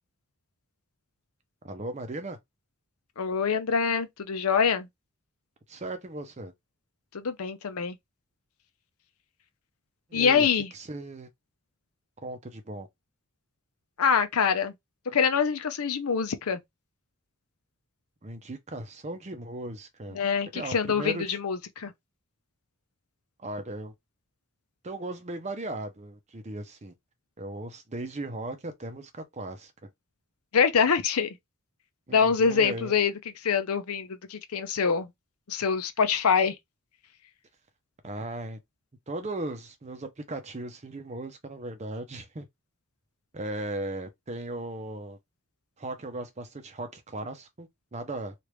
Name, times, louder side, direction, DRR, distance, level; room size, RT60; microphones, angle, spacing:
voice 1, 1.6-2.4 5.7-6.5 10.1-10.5 10.7-11.3 12.2-12.9 18.2-20.2 20.5-21.4 23.4-23.9 24.8-26.9 27.4-29.7 32.1-33.0 38.0-38.6 39.1-42.5 43.3-45.2 45.8-48.3, right 2 dB, 30° right, 0.6 m, -37 dB
voice 2, 3.2-4.9 7.1-8.0 10.1-10.7 14.0-14.7 15.1-16.6 20.1-21.9 30.5-31.3 32.1-33.1 33.4-35.1 35.5-36.5, left 6 dB, 80° left, 0.6 m, -25 dB
3.3 x 2.5 x 3.1 m
head